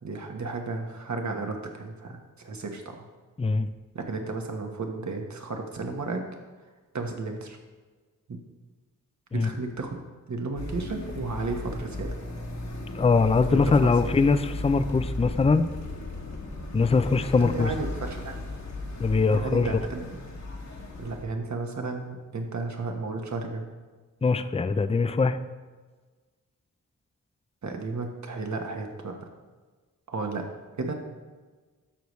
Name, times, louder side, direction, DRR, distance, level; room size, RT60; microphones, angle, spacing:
voice 1, 0.0-3.0 3.9-6.2 6.9-7.6 8.3-8.4 9.3-10.0 10.3-12.1 13.5-14.1 17.4-18.3 19.3-20.2 21.0-23.6 27.6-29.3 30.1-30.4 30.8-30.9, right 3 dB, 60° right, 3 dB, 1.3 m, -33 dB
sound 1, 10.6-21.3, left 2 dB, 55° left, 1.5 m, -36 dB
voice 2, 12.9-15.7 16.7-17.7 19.0-19.7 24.2-25.4, left 4 dB, 20° left, 11 dB, 0.4 m, -22 dB
11.5 x 6.7 x 3.2 m, 1.4 s
wide cardioid pair, 65°, 33 cm